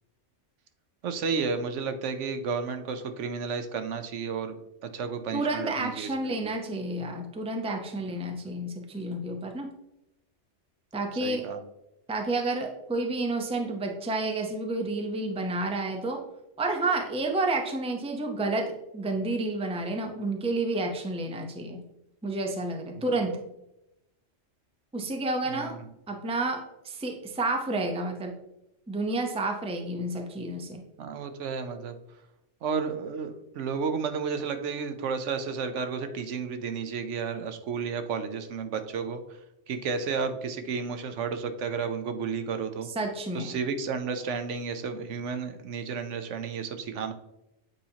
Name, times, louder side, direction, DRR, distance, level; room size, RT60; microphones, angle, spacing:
voice 1, 1.0-4.6 4.8-6.5 11.2-11.6 22.9-23.2 25.5-25.7 31.0-32.0 32.6-39.2 39.7-42.9 43.3-47.1, right 5 dB, 75° right, 8 dB, 1.0 m, -32 dB
voice 2, 5.3-9.7 10.9-11.5 12.1-16.2 16.6-21.8 22.2-23.4 24.9-25.7 26.1-28.4 28.9-30.9 42.9-43.5, right 2 dB, 5° right, 3 dB, 0.5 m, -30 dB
8.4 x 4.2 x 2.8 m, 0.88 s
omnidirectional pair, 1.3 m